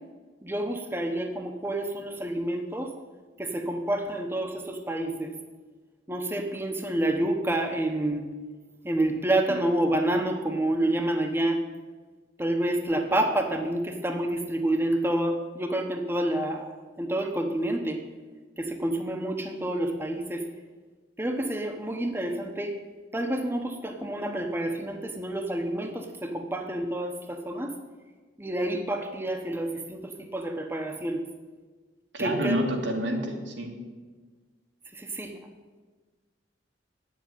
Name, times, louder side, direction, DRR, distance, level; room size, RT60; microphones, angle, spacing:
voice 1, 0.4-2.9 3.4-5.3 6.1-8.3 8.8-11.6 12.4-18.0 18.6-20.4 21.2-22.7 23.1-27.7 28.4-31.2 32.2-32.6 34.9-35.3, right 1 dB, 15° right, 3 dB, 0.9 m, -28 dB
voice 2, 32.1-33.7, equal, 80° right, 1 dB, 2.2 m, -28 dB
9.5 x 7.4 x 9.2 m, 1.4 s
head